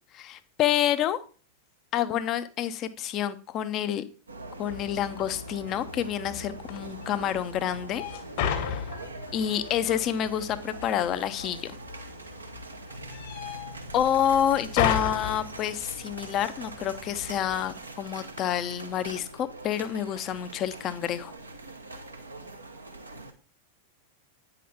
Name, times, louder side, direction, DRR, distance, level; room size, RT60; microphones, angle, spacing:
voice 1, 0.1-1.2 1.9-4.0 4.6-8.0 8.5-8.8 9.3-11.7 13.9-21.3, left 10 dB, 35° left, 12 dB, 0.8 m, -28 dB
sound 1, 4.3-23.3, right 2 dB, 80° right, 1.1 m, -43 dB
sound 2, 4.7-17.8, left 8 dB, 50° left, 1.6 m, -36 dB
sound 3, 12.9-22.6, left 1 dB, 60° right, 1.0 m, -52 dB
9.3 x 5.9 x 3.5 m, 0.37 s
figure-of-eight pair, 90°, 0 cm